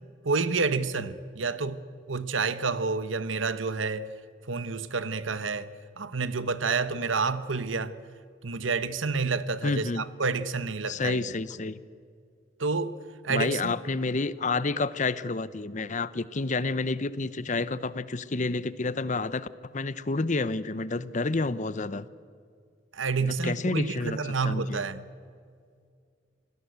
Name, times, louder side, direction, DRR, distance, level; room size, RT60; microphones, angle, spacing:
voice 1, 0.2-1.8 2.1-4.1 4.5-8.0 8.4-11.2 12.6-13.0 13.2-13.7 22.9-25.0, right 4 dB, 85° right, 1.1 m, -29 dB
voice 2, 9.6-10.0 10.9-11.8 13.3-22.1 23.2-24.2 24.4-24.8, left 3 dB, 40° left, 0.8 m, -29 dB
27.5 x 17.5 x 8.1 m
head